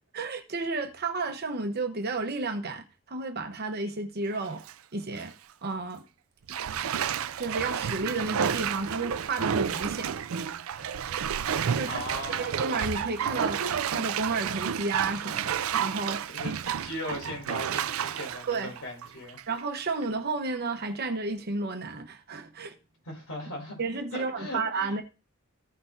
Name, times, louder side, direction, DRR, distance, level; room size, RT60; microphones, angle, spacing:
voice 1, 0.1-4.6 4.9-5.3 5.6-6.1 7.4-10.1 10.8-16.3 18.5-18.7 19.5-22.7 23.8-25.0, right 3 dB, 50° right, 0.9 m, -32 dB
Bathtub (filling or washing), 4.3-4.7 5.2-5.3 6.5-19.6 20.0-20.1, right 8 dB, 75° right, 0.4 m, -31 dB
voice 2, 11.8-12.5 16.3-19.4 23.0-23.8 24.1-24.9, left 1 dB, 85° left, 4.6 m, -38 dB
15.0 x 5.9 x 2.6 m
head